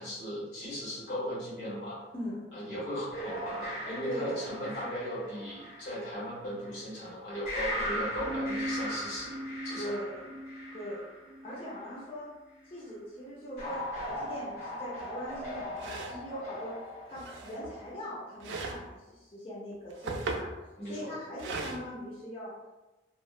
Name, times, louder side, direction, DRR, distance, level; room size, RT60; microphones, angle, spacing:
voice 1, 0.0-2.0 2.5-9.4 9.6-9.9 20.8-21.1, equal, 80° left, -8 dB, 1.4 m, -37 dB
voice 2, 2.1-2.4 3.9-4.5 4.8-5.1 7.8-8.0 9.8-10.2 10.7-11.0 11.4-12.3 12.7-16.7 17.1-20.5 20.8-22.5, equal, 30° left, -7 dB, 0.5 m, -40 dB
sound 1, 3.1-6.8 7.5-11.9 13.6-17.9, equal, 55° left, 1.5 m, -38 dB
sound 2, 15.0-15.1 15.7-16.2 17.1-17.8 18.4-18.9 19.7-20.5 21.4-21.8, right 3 dB, 80° right, 0.3 m, -37 dB
2.9 x 2.0 x 2.3 m, 1.1 s
head